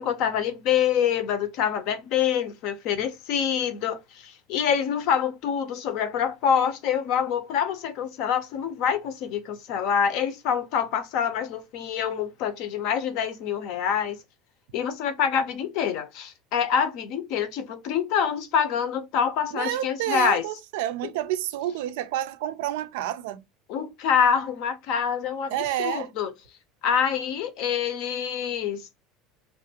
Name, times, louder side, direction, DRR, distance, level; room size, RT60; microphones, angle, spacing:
voice 1, 0.0-14.2 14.7-20.5 21.0-21.1 23.7-26.3 26.8-28.9, left 8 dB, 50° left, 0.6 m, -26 dB
voice 2, 19.5-23.4 25.5-26.1, right 13 dB, 80° right, 0.4 m, -29 dB
3.2 x 2.5 x 2.8 m
cardioid pair, 170°, 0 cm